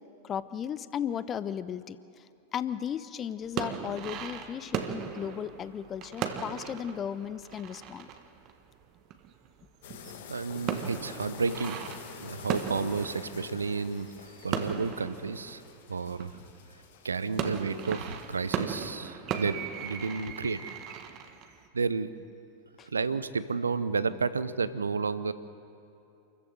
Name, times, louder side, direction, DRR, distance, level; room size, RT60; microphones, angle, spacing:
voice 1, 0.2-2.0 2.5-8.1 20.4-20.5 22.8-22.9, left 8 dB, 25° left, 15 dB, 0.7 m, -35 dB
sound 1, 3.4-9.6 9.9-16.6 17.1-21.7, right 8 dB, 35° right, 1.5 m, -37 dB
sound 2, 9.8-18.8, left 7 dB, 55° left, 1.8 m, -47 dB
voice 2, 10.3-11.8 12.2-14.1 14.4-15.6 15.9-16.3 17.0-20.6 21.7-22.1 22.9-25.3, right 4 dB, 75° right, 15 dB, 0.8 m, -31 dB
28.0 x 14.5 x 7.7 m, 2.8 s
figure-of-eight pair, 90°, 0 cm